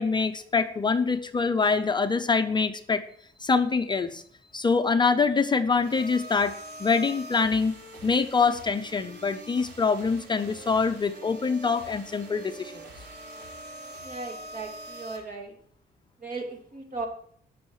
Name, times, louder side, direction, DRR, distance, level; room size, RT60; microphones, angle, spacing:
voice 1, 0.0-3.0 3.4-4.2 4.5-6.5 6.8-7.8 8.0-12.9, left 4 dB, 25° left, 7 dB, 0.6 m, -25 dB
sound 1, 5.8-15.2, right 1 dB, 75° right, 5.5 m, -44 dB
voice 2, 14.0-15.6 16.2-17.1, right 3 dB, 50° right, 2 dB, 3.0 m, -37 dB
18.5 x 6.3 x 4.8 m, 0.63 s
cardioid pair, 160°, 18 cm